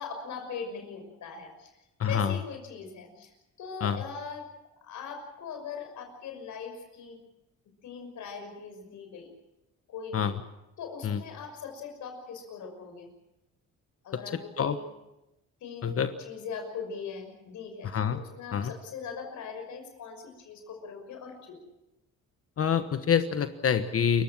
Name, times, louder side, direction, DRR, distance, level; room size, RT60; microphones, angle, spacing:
voice 1, 0.0-1.7 2.1-3.3 3.6-4.4 4.8-7.2 7.8-9.3 9.9-10.3 10.8-13.1 14.0-14.8 15.6-21.6, left 5 dB, 75° left, 4 dB, 6.1 m, -40 dB
voice 2, 2.0-2.4 3.8-4.0 10.1-10.3 11.0-11.2 14.6-14.8 15.8-16.1 17.8-18.2 18.5-18.7 22.6-24.2, left 7 dB, 50° left, 10 dB, 1.3 m, -26 dB
29.0 x 16.0 x 7.5 m, 0.95 s
cardioid pair, 90°, 30 cm